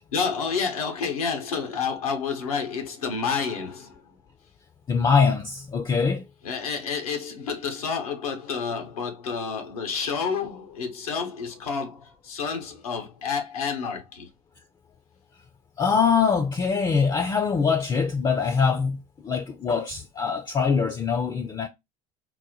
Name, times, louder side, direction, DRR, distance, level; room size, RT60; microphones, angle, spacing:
voice 1, 0.1-4.1 6.4-14.3, left 5 dB, 80° left, 0.8 m, -29 dB
voice 2, 4.9-6.2 15.8-21.7, left 5 dB, 20° left, 0.4 m, -23 dB
4.0 x 2.1 x 2.8 m
hypercardioid pair, 65°, 18 cm